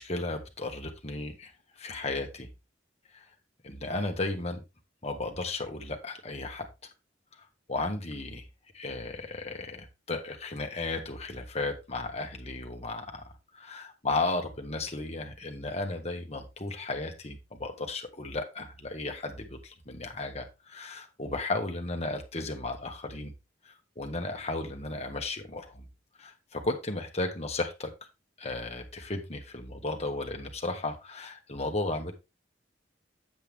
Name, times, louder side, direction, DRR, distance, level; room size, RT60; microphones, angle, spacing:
voice 1, 0.0-2.5 3.1-3.2 3.6-4.6 5.0-6.6 7.7-8.5 8.7-23.3 23.6-25.9 26.2-27.9 28.4-32.1, left 2 dB, 35° left, 4 dB, 1.5 m, -34 dB
8.2 x 7.6 x 3.5 m, 0.26 s
head